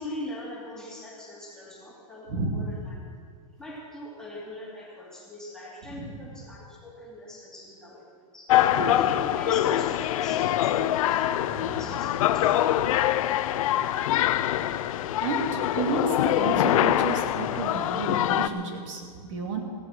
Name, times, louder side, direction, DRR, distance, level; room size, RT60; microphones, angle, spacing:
voice 1, 0.0-3.0 3.6-8.0 8.3-8.5 8.8-12.8, left 1 dB, 5° left, -5 dB, 2.6 m, -41 dB
voice 2, 2.3-2.8 5.9-6.2 8.6-9.0 11.6-11.9 15.2-19.6, right 4 dB, 55° right, 2 dB, 2.8 m, -32 dB
sound 1, 8.5-18.5, left 12 dB, 60° left, 0.7 m, -24 dB
16.0 x 10.0 x 7.8 m, 2.2 s
supercardioid pair, 165°, 19 cm